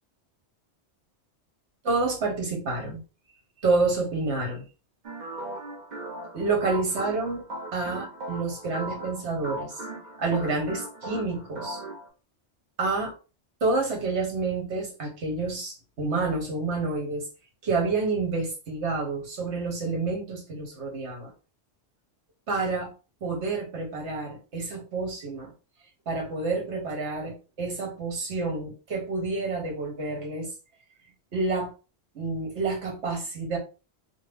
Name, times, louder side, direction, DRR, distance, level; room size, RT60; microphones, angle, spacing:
voice 1, 1.8-3.0 3.6-4.6 6.3-7.5 7.7-9.8 10.2-11.8 12.8-13.1 13.6-17.3 17.6-21.3 22.5-22.9 23.2-25.5 26.1-30.5 31.3-31.7 32.1-33.6, right 3 dB, 75° right, 0 dB, 1.4 m, -28 dB
sound 1, 5.0-12.1, right 1 dB, 45° right, 0.7 m, -38 dB
2.8 x 2.2 x 3.3 m, 0.33 s
omnidirectional pair, 1.2 m